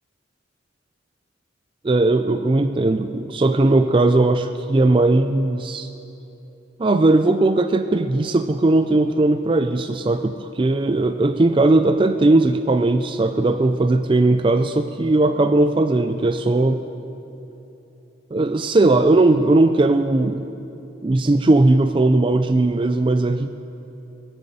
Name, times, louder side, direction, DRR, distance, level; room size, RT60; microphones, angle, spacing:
voice 1, 1.8-5.9 6.8-16.8 18.3-20.5 21.0-23.5, right 2 dB, 25° right, 8 dB, 0.4 m, -18 dB
21.5 x 7.8 x 7.5 m, 3.0 s
head